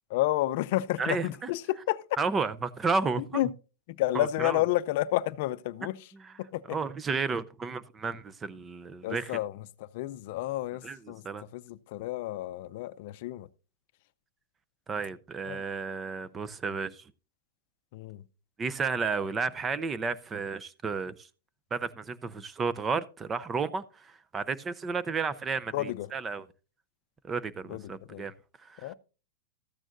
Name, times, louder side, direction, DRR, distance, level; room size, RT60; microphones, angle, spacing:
voice 1, 0.1-2.0 3.3-3.5 3.9-6.0 6.4-6.8 9.0-11.2 11.5-13.5 15.5-15.6 17.9-18.2 25.7-26.1 27.7-28.3 28.8-28.9, left 15 dB, 55° left, 0.5 m, -31 dB
voice 2, 1.0-1.5 2.2-3.4 4.1-4.6 6.7-9.4 10.8-11.4 14.9-17.0 18.6-21.3 21.7-26.5 27.2-28.3 28.6-28.9, right 4 dB, 15° right, 0.5 m, -32 dB
13.5 x 9.0 x 2.5 m
supercardioid pair, 150°, 0 cm